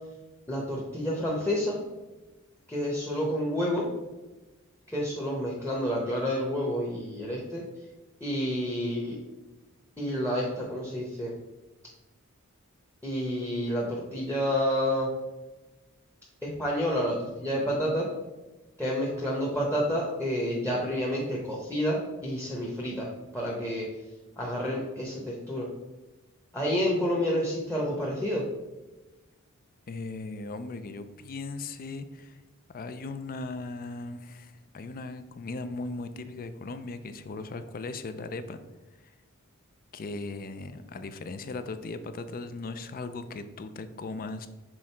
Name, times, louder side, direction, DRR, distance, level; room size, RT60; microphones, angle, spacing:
voice 1, 0.5-1.8 2.7-3.8 4.9-7.6 8.2-9.2 10.0-11.3 13.0-15.1 16.4-18.1 18.8-23.1 23.3-23.9 24.4-25.7 26.5-28.4, equal, 5° left, -3 dB, 0.9 m, -29 dB
voice 2, 29.9-32.4 32.7-38.6 39.9-44.5, left 3 dB, 40° left, 11 dB, 0.4 m, -38 dB
6.2 x 3.7 x 4.4 m, 1.1 s
head